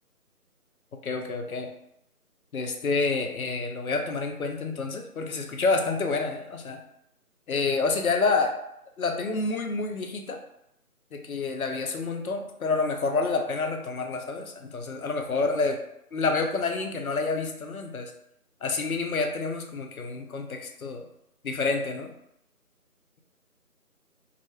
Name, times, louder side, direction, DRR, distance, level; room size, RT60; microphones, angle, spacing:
voice 1, 1.0-1.7 2.5-6.8 7.5-8.6 9.0-10.4 11.1-15.8 16.1-18.1 18.6-21.1 21.4-22.1, left 3 dB, 70° left, 4 dB, 0.5 m, -28 dB
2.3 x 2.0 x 2.9 m, 0.77 s
figure-of-eight pair, 165°, 46 cm